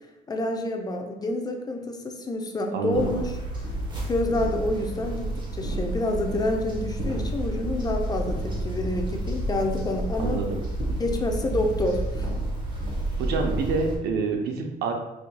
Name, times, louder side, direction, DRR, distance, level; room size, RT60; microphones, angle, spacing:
voice 1, 0.3-3.4 4.1-10.4 11.0-12.3, left 1 dB, 25° left, 3 dB, 0.4 m, -28 dB
voice 2, 2.7-3.1 10.2-10.6 13.2-14.9, right 4 dB, 75° right, 3 dB, 0.6 m, -27 dB
sound 1, 2.9-14.0, right 1 dB, 25° right, 0.8 m, -30 dB
4.5 x 2.7 x 2.2 m, 1.0 s
cardioid pair, 110°, 17 cm